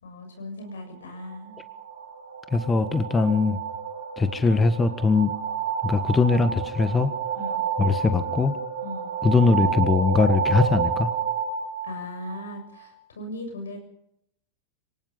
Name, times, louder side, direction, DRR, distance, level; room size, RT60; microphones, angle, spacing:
voice 1, 0.0-1.6 7.3-7.6 8.8-9.1 11.8-13.8, left 1 dB, 90° left, 5 dB, 6.8 m, -38 dB
sound 1, 1.2-12.9, right 6 dB, 85° right, 2.3 m, -30 dB
voice 2, 2.5-3.6 4.2-5.3 5.8-7.1 7.8-8.5 9.2-11.1, left 4 dB, 15° left, 10 dB, 1.6 m, -21 dB
23.5 x 19.0 x 5.7 m, 0.78 s
hypercardioid pair, 110°, 0 cm